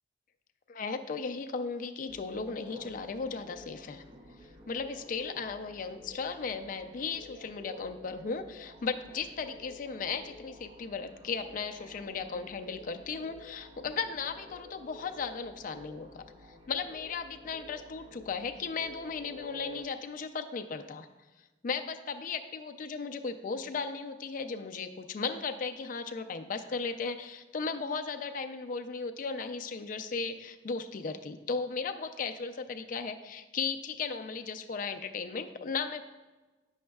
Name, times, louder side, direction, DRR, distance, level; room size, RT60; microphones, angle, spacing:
voice 1, 0.7-4.0 4.7-16.2 16.7-21.1 21.6-36.0, left 5 dB, 50° left, 7 dB, 0.4 m, -36 dB
sound 1, 2.1-19.8, left 2 dB, 25° right, 0.6 m, -51 dB
8.5 x 6.3 x 2.3 m, 1.2 s
head